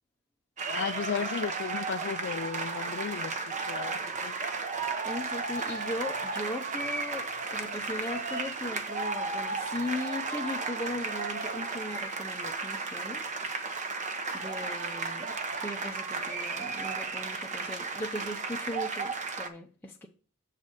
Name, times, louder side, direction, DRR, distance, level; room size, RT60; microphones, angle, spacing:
sound 1, 0.6-19.5, right 4 dB, 35° right, 0.9 m, -34 dB
voice 1, 0.7-4.3, left 7 dB, 50° left, 0.3 m, -35 dB
voice 2, 5.0-13.3 14.3-20.1, left 1 dB, 10° left, 0.7 m, -38 dB
7.3 x 4.1 x 6.2 m
head